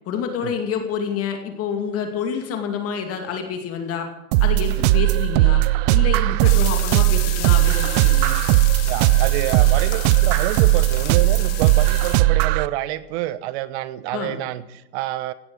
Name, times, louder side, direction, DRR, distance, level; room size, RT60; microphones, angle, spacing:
voice 1, 0.1-4.1 4.4-5.6 5.9-8.4 14.1-14.4, left 7 dB, 30° left, 4 dB, 2.5 m, -28 dB
sound 1, 4.3-12.7, right 16 dB, 30° right, 0.5 m, -18 dB
sound 2, 6.4-12.2, left 16 dB, 50° left, 1.5 m, -33 dB
voice 2, 8.7-15.3, right 14 dB, 45° right, 16 dB, 1.2 m, -28 dB
17.0 x 11.5 x 6.5 m, 0.91 s
hypercardioid pair, 125°, 45 cm